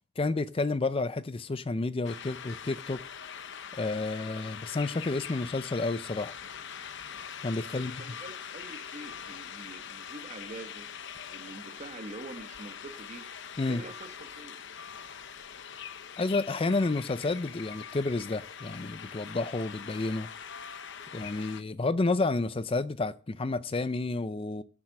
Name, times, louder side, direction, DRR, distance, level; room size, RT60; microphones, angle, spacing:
voice 1, 0.2-3.0 3.7-6.3 7.4-7.9 13.6-13.8 16.2-20.3 21.1-24.6, left 3 dB, 25° left, 0.4 m, -30 dB
sound 1, 2.0-21.6, left 8 dB, 55° left, 0.9 m, -43 dB
voice 2, 7.6-10.9 11.2-13.3 13.6-14.6, right 2 dB, 35° right, 1.1 m, -45 dB
10.5 x 7.4 x 6.5 m
head